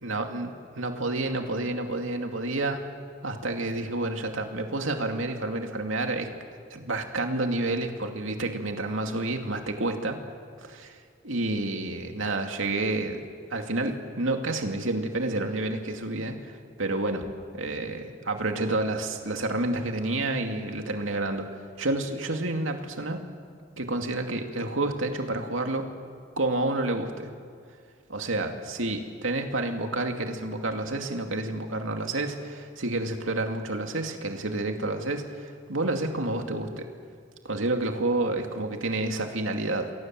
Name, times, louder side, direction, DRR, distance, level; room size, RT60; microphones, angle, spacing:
voice 1, 0.0-2.9 3.2-6.3 6.7-10.2 10.6-11.0 11.2-13.2 13.5-17.2 17.5-21.5 21.8-23.2 23.8-25.9 26.4-27.3 28.1-36.9 37.4-39.9, right 2 dB, 75° right, 4 dB, 2.5 m, -29 dB
29.0 x 23.0 x 7.7 m, 2.2 s
head